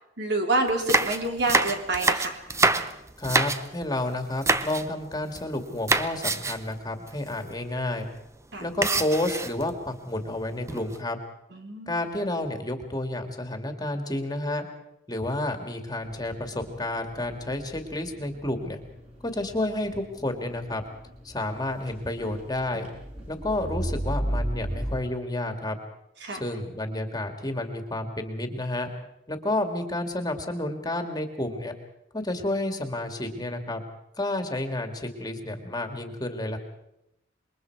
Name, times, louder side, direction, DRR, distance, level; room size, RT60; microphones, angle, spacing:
voice 1, 0.2-2.4 8.5-8.6 11.5-11.9 26.2-26.4, right 2 dB, 65° right, 2 dB, 3.4 m, -27 dB
sound 1, 0.7-3.9 4.4-4.9 5.1-5.5 5.9-6.7 7.1-7.2 7.4-7.6 8.8-9.7 10.4-11.0, right 3 dB, 15° right, 0.7 m, -26 dB
voice 2, 3.2-8.1 8.6-11.2 11.9-14.7 15.1-18.8 19.2-20.8 21.2-22.9 23.3-25.8 26.3-28.9 29.3-31.7 32.1-33.8 34.2-36.6, left 1 dB, 20° left, 5 dB, 2.1 m, -30 dB
sound 2, 16.0-25.0, right 1 dB, 35° right, 6.9 m, -36 dB
27.0 x 22.0 x 4.7 m, 0.82 s
head